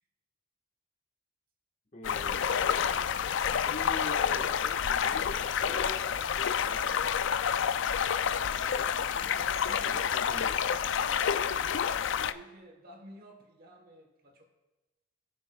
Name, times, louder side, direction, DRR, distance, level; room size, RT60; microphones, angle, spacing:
voice 1, 1.9-2.4 3.6-6.0 6.4-7.5 9.8-10.6, left 1 dB, 35° left, 0 dB, 1.3 m, -44 dB
sound 1, 2.0-12.3, left 8 dB, 60° left, 0.4 m, -29 dB
voice 2, 7.9-10.1 12.2-14.4, equal, 45° right, 3 dB, 1.1 m, -53 dB
19.5 x 6.9 x 2.3 m, 1.1 s
head